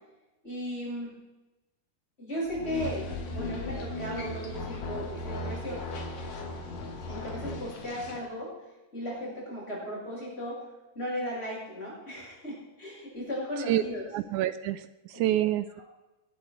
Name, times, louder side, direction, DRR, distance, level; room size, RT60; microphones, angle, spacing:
voice 1, 0.4-1.2 2.2-5.9 7.1-8.5 8.9-10.6 10.9-14.0 15.1-15.5, equal, 15° left, -5 dB, 7.3 m, -36 dB
sound 1, 2.5-7.7, left 2 dB, 80° left, 3.5 m, -37 dB
sound 2, 2.7-8.2, left 4 dB, 50° left, 2.7 m, -46 dB
voice 2, 14.1-15.8, right 13 dB, 80° right, 14 dB, 1.8 m, -28 dB
20.0 x 11.5 x 4.7 m, 1.0 s
omnidirectional pair, 3.9 m